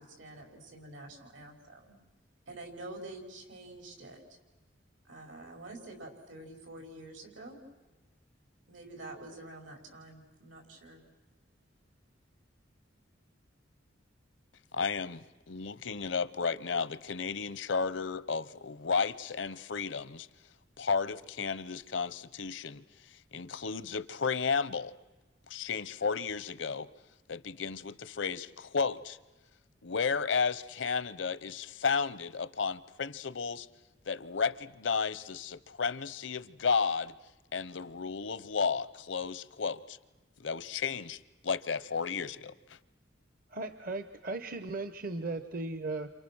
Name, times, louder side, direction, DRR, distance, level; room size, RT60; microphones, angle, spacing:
voice 1, 0.0-1.9 2.5-4.2 5.0-7.6 8.7-11.0, right 2 dB, 85° right, 5.4 m, -47 dB
voice 2, 14.7-20.3 20.8-22.8 23.3-24.9 25.5-26.9 27.3-29.2 29.8-33.7 34.1-37.1 37.5-40.0 40.4-42.8, left 5 dB, 75° left, 0.8 m, -33 dB
voice 3, 43.5-46.1, right 3 dB, 50° right, 0.8 m, -37 dB
30.0 x 28.0 x 6.3 m
head